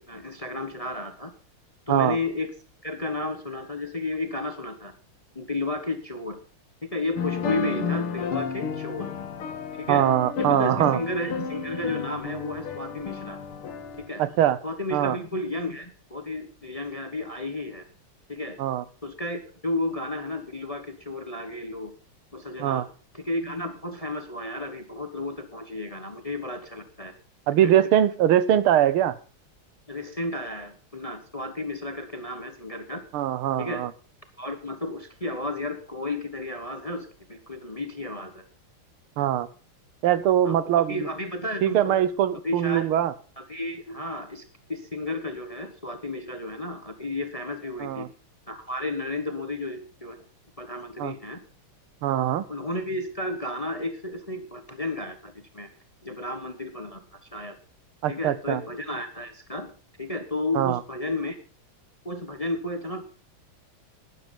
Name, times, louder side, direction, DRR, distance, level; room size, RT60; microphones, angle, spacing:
voice 1, 0.0-1.3 1.9-2.5 2.8-4.9 5.3-6.4 6.9-9.1 9.8-10.0 10.4-13.4 14.0-14.2 14.6-17.8 18.3-18.6 19.0-21.9 22.3-22.9 23.1-27.1 27.6-27.7 29.9-33.0 33.6-33.8 34.4-38.4 40.4-42.0 42.4-42.9 43.4-48.1 48.5-50.2 50.6-51.4 52.5-55.7 56.0-57.0 57.3-57.6 58.1-59.7 60.0-61.4 62.0-63.0, left 2 dB, 25° left, 8 dB, 0.9 m, -32 dB
sound 1, 7.2-14.1, left 5 dB, 85° left, 2.3 m, -32 dB
voice 2, 9.9-11.0 14.2-14.6 14.9-15.2 18.6-18.8 22.6-22.8 27.5-29.2 33.1-33.9 39.2-39.5 40.0-41.1 41.6-43.1 47.8-48.1 51.0-51.1 52.0-52.4 58.0-58.6 60.6-60.8, right 11 dB, 85° right, 16 dB, 1.7 m, -22 dB
12.5 x 11.0 x 5.2 m, 0.37 s
omnidirectional pair, 2.3 m